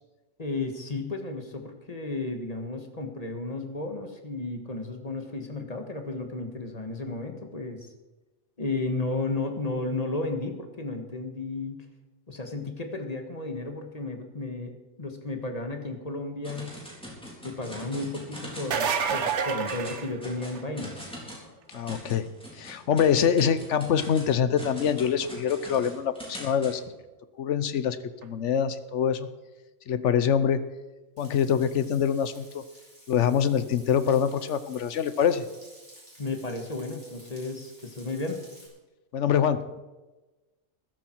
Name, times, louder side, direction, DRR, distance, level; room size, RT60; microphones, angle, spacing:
voice 1, 0.4-7.9 8.6-11.8 12.3-16.8 17.4-21.1 36.2-38.4, left 2 dB, 35° left, 5 dB, 1.6 m, -33 dB
sound 1, 16.4-18.8 19.0-19.4 19.7-26.7, equal, 5° left, 3.8 m, -43 dB
sound 2, 18.5-20.8 26.3-26.4 28.2-28.3, right 6 dB, 75° right, 1.3 m, -28 dB
voice 2, 21.7-22.3 22.6-26.8 27.4-28.0 28.2-29.3 29.9-30.6 31.2-32.6 33.1-35.4 39.1-39.8, left 8 dB, 85° left, 13 dB, 1.1 m, -25 dB
Frying (food), 31.2-38.7, equal, 25° right, 5.4 m, -53 dB
14.5 x 12.5 x 4.6 m, 1.1 s
omnidirectional pair, 1.2 m